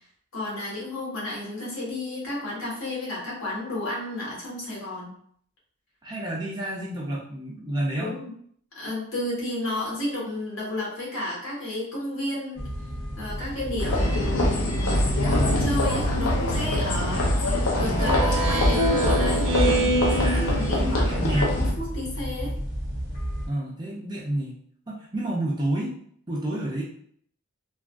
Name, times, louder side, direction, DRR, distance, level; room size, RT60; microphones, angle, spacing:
voice 1, 0.3-5.1 8.0-8.3 8.7-12.7 13.2-17.2 17.8-19.5 20.1-22.5, left 1 dB, 65° left, -5 dB, 1.4 m, -32 dB
voice 2, 6.0-8.1 20.2-21.5 23.5-24.6 24.9-25.9 26.3-26.8, right 1 dB, 20° right, -5 dB, 0.4 m, -29 dB
sound 1, 12.5-23.5, equal, 25° left, 1.2 m, -32 dB
sound 2, 13.8-21.7, left 1 dB, 80° left, 0.7 m, -24 dB
Speech synthesizer, 17.8-21.3, right 1 dB, 75° right, 0.6 m, -26 dB
3.4 x 2.3 x 2.5 m, 0.62 s
head